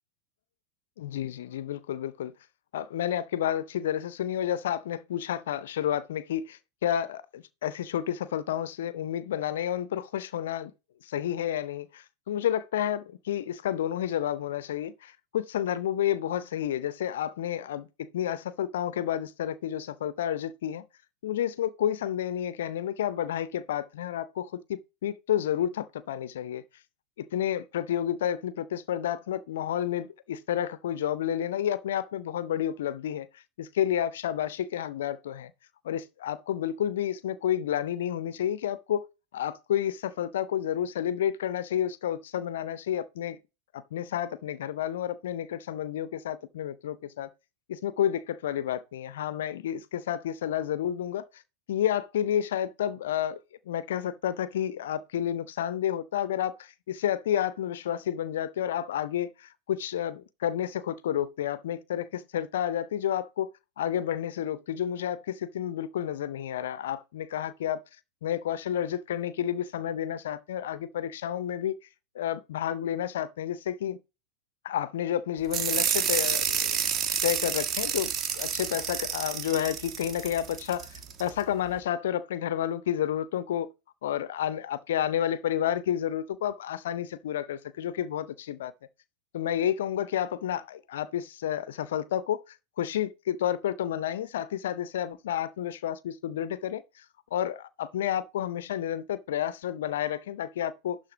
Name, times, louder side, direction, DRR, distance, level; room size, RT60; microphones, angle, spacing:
voice 1, 1.0-2.3 2.7-10.7 11.0-20.9 21.2-26.6 27.2-35.5 35.8-39.1 39.3-43.4 43.7-47.3 47.7-51.4 51.7-63.5 63.8-67.8 68.2-71.8 72.1-74.0 74.6-76.8 77.2-83.7 84.0-88.7 89.3-97.0 97.3-101.0, left 10 dB, 60° left, 0.5 m, -30 dB
sound 1, 75.5-81.3, right 8 dB, 30° right, 1.5 m, -29 dB
11.5 x 3.9 x 3.8 m
figure-of-eight pair, 90°, 0 cm